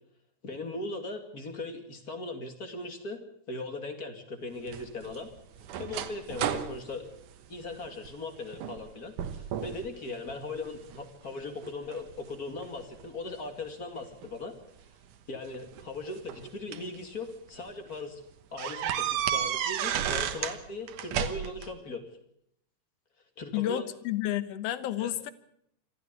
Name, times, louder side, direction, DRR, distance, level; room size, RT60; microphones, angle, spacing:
voice 1, 0.4-3.2 3.5-5.3 5.8-7.1 7.5-14.5 15.3-18.2 18.5-22.0 23.4-23.8 25.0-25.1, left 3 dB, 30° left, 7 dB, 2.4 m, -39 dB
sound 1, 4.7-8.1 8.5-8.9 9.2-9.9 10.3-11.0 11.6-13.1 14.2-14.3 15.5-17.0 17.5-17.6 17.9-18.0 18.6-20.6 20.9-21.7, right 10 dB, 75° right, 2.7 m, -33 dB
voice 2, 23.5-25.3, left 13 dB, 60° left, 14 dB, 1.9 m, -31 dB
25.5 x 14.0 x 8.3 m, 0.73 s
omnidirectional pair, 3.8 m